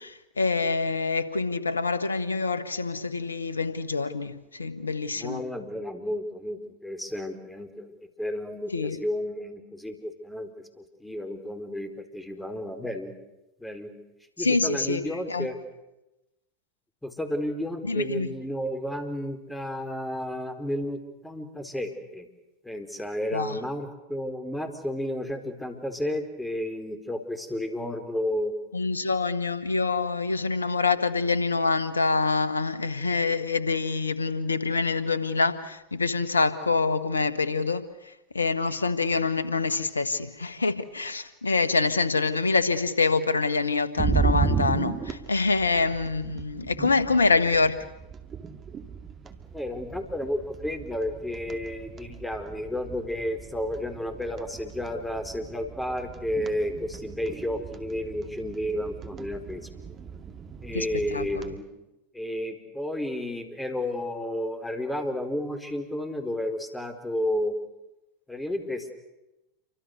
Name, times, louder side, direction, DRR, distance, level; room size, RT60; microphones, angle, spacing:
voice 1, 0.0-5.4 8.7-9.0 14.4-15.5 17.8-18.3 23.3-23.6 28.7-47.9 60.7-60.9 61.1-61.5, left 4 dB, 90° left, 1.3 m, -26 dB
voice 2, 5.1-13.1 13.6-13.9 14.4-15.6 17.0-22.3 22.6-28.5 41.6-41.7 49.5-59.7 60.6-61.6 62.1-67.5 68.3-68.9, left 1 dB, 5° left, 4.5 m, -32 dB
sound 1, 44.0-61.6, right 6 dB, 30° right, 2.4 m, -35 dB
28.5 x 25.0 x 6.8 m
hypercardioid pair, 85°, 0 cm